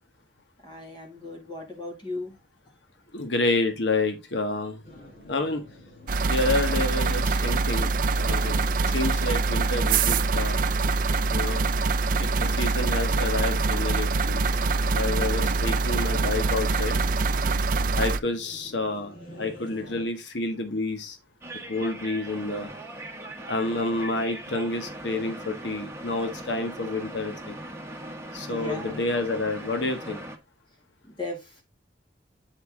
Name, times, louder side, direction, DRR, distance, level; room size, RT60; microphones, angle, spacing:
voice 1, 0.6-2.3 28.3-29.0 31.2-31.6, left 2 dB, 25° left, 2.2 m, -36 dB
voice 2, 3.1-4.8 5.3-5.6 6.3-10.6 11.3-11.6 12.2-14.5 15.0-17.0 17.9-21.2 21.7-22.7 23.5-27.6 28.3-30.2, left 2 dB, 85° left, 1.1 m, -29 dB
sound 1, 4.8-20.1, left 1 dB, 60° left, 3.9 m, -48 dB
sound 2, 6.1-18.2, right 3 dB, 50° right, 0.4 m, -24 dB
sound 3, 21.4-30.4, right 1 dB, 15° right, 1.1 m, -40 dB
7.9 x 4.3 x 3.5 m
head